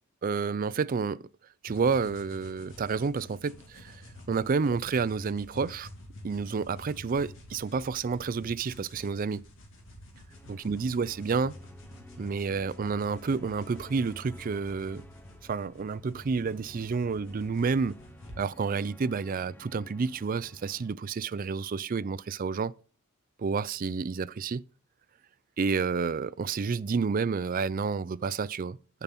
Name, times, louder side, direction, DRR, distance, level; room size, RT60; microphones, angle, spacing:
voice 1, 0.2-1.2 1.6-4.0 4.3-5.9 6.2-9.4 10.5-11.5 12.2-15.0 15.4-18.0 18.4-22.7 23.4-24.6 25.6-29.0, right 5 dB, 40° right, 0.4 m, -30 dB
sound 1, 1.7-18.4, left 1 dB, 60° left, 2.8 m, -50 dB
sound 2, 10.3-21.0, left 1 dB, 10° left, 0.6 m, -52 dB
9.4 x 7.1 x 4.2 m
head